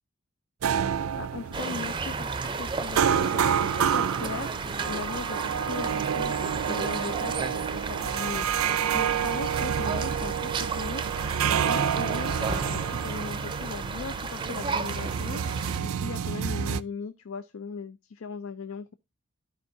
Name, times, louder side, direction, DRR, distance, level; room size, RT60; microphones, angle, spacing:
sound 1, 0.6-16.8, right 8 dB, 85° right, 0.4 m, -29 dB
voice 1, 1.2-18.9, left 5 dB, 75° left, 0.5 m, -39 dB
sound 2, 1.5-15.8, right 4 dB, 20° right, 0.5 m, -33 dB
13.5 x 4.7 x 2.6 m
head